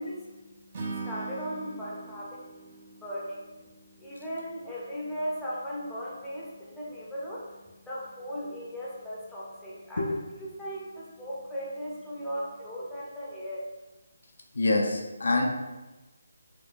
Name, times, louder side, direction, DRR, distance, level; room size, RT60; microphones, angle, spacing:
voice 1, 0.0-13.6, equal, 5° left, -8 dB, 0.6 m, -38 dB
Acoustic guitar / Strum, 0.7-4.0, right 4 dB, 40° right, 0.5 m, -40 dB
voice 2, 14.5-15.5, left 2 dB, 65° left, 0 dB, 0.5 m, -25 dB
4.2 x 2.2 x 2.5 m, 1.1 s
figure-of-eight pair, 150°, 0 cm